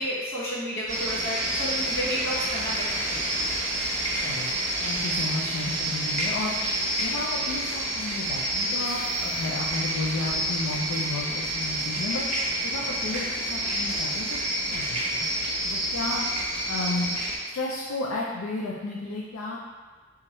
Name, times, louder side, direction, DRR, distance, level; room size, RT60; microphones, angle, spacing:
voice 1, 0.0-3.4, equal, 60° left, -7 dB, 1.4 m, -31 dB
sound 1, 0.9-17.4, right 1 dB, 35° right, 0.8 m, -28 dB
voice 2, 4.8-14.4 14.7-15.3 15.6-16.3 16.7-17.2 17.5-19.6, left 2 dB, 80° left, -4 dB, 0.5 m, -33 dB
4.4 x 3.6 x 3.0 m, 1.4 s
head